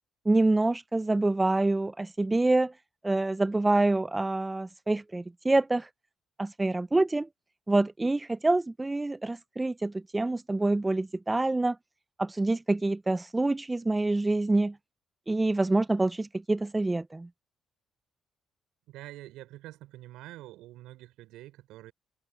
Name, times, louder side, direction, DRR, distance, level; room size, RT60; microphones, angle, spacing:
voice 1, 0.3-2.7 3.0-5.9 6.4-7.3 7.7-11.8 12.2-14.7 15.3-17.3, right 2 dB, 20° right, 0.7 m, -26 dB
voice 2, 18.9-21.9, right 16 dB, 75° right, 5.7 m, -46 dB
hypercardioid pair, 55°, 0 cm